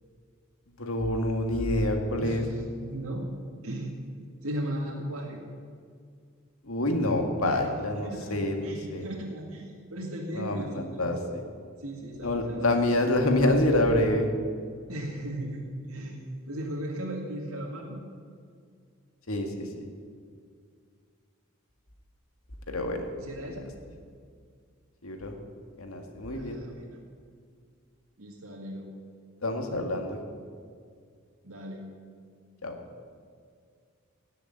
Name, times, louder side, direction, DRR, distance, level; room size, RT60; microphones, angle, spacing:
voice 1, 0.8-2.4 6.6-9.2 10.3-11.4 12.2-14.3 19.3-19.7 22.7-23.1 25.0-25.4 25.8-26.6 29.4-30.2 32.6-32.8, left 1 dB, 85° left, 4 dB, 1.9 m, -27 dB
voice 2, 2.2-3.3 3.6-3.9 4.4-5.4 7.4-7.6 8.0-11.2 11.8-13.0 14.9-15.6 15.9-16.2 16.5-18.0 23.2-23.7 26.3-27.0 28.2-28.9 31.4-31.8, right 1 dB, 85° right, -2 dB, 2.1 m, -37 dB
17.5 x 6.9 x 8.8 m, 2.1 s
head